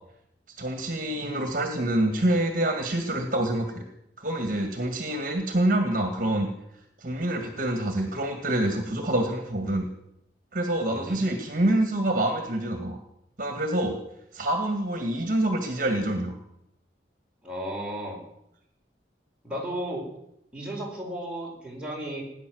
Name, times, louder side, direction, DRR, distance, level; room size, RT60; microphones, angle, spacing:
voice 1, 0.6-3.8 4.2-6.5 7.0-9.9 10.5-13.0 13.4-14.0 14.3-16.4, right 1 dB, 50° right, 6 dB, 1.9 m, -26 dB
voice 2, 10.9-11.2 17.4-18.2 19.4-20.0 20.5-22.2, right 1 dB, 5° right, -3 dB, 4.8 m, -34 dB
18.0 x 10.0 x 7.8 m, 0.81 s
head